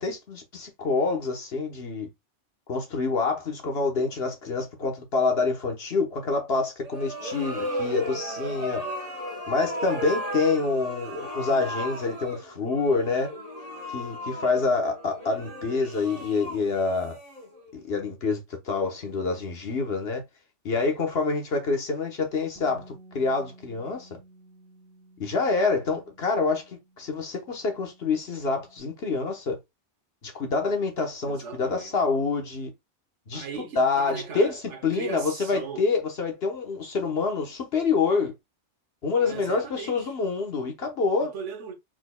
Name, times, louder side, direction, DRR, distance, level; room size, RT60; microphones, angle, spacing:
voice 1, 0.0-2.1 2.7-8.9 9.5-13.3 13.9-17.2 17.7-20.2 20.6-24.1 25.2-29.6 30.2-32.7 33.3-33.5 33.8-38.3 39.0-41.3, left 4 dB, 55° left, 1.3 m, -27 dB
sound 1, 6.8-17.8, equal, 30° right, 1.2 m, -35 dB
Bass guitar, 22.6-28.8, right 2 dB, 10° left, 2.1 m, -55 dB
voice 2, 31.2-32.0 33.3-35.9 39.1-40.1 41.2-41.7, right 5 dB, 70° right, 1.3 m, -38 dB
4.6 x 4.2 x 2.2 m
omnidirectional pair, 1.3 m